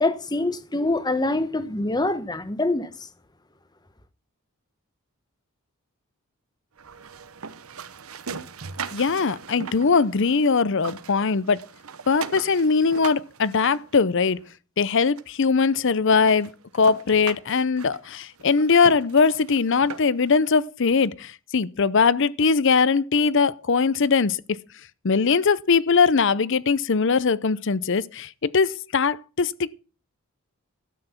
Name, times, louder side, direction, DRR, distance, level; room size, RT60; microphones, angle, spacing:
voice 1, 0.0-3.1, left 2 dB, 20° left, 1.0 m, -25 dB
sound 1, 6.8-10.5 10.7-14.5 15.2-15.3 15.7-15.8 16.1-20.3, right 6 dB, 85° right, 1.0 m, -39 dB
voice 2, 8.9-11.6 12.1-14.4 14.8-24.4 25.0-29.7, left 5 dB, 60° left, 0.6 m, -21 dB
12.5 x 9.1 x 5.7 m
head